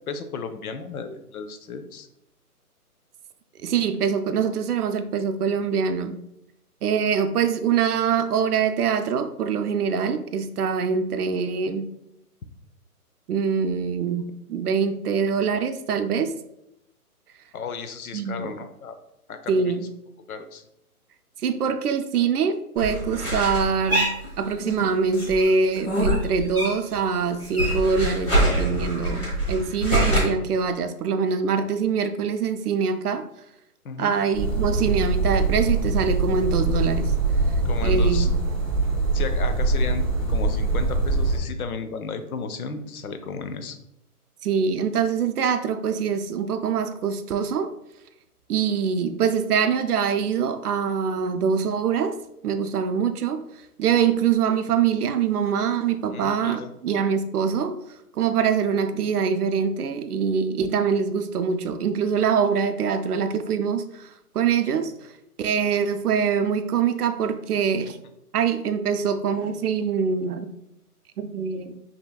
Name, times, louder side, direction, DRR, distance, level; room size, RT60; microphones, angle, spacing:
voice 1, 0.1-2.1 17.5-19.0 19.3-19.8 20.3-20.6 33.8-34.2 37.6-38.3 39.1-43.8 56.1-56.7, left 5 dB, 70° left, 9 dB, 0.6 m, -34 dB
voice 2, 3.6-6.2 6.8-11.9 13.3-16.3 18.1-18.5 19.5-19.9 21.4-24.1 24.4-33.2 34.0-37.1 37.8-38.4 44.4-47.7 48.5-52.2 52.4-53.4 53.8-57.8 58.1-64.9 65.4-68.0 68.3-70.5 71.2-71.8, right 6 dB, 75° right, 10 dB, 0.6 m, -24 dB
sound 1, 22.8-24.8 25.1-27.0 27.2-30.2, right 1 dB, 20° left, 1.4 m, -24 dB
sound 2, 34.3-41.4, right 3 dB, 10° right, 0.9 m, -23 dB
5.6 x 2.8 x 2.3 m, 0.81 s
hypercardioid pair, 160°, 46 cm